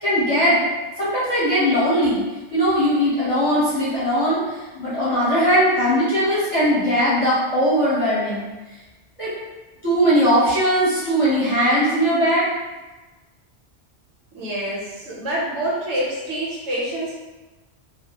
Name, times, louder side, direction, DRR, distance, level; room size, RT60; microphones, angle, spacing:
voice 1, 0.0-0.6 1.0-2.2 2.5-8.4 9.2-9.3 9.8-12.5, equal, 30° left, -11 dB, 0.9 m, -19 dB
voice 2, 14.3-17.1, right 1 dB, 75° right, -5 dB, 1.0 m, -26 dB
2.4 x 2.1 x 2.8 m, 1.2 s
omnidirectional pair, 1.2 m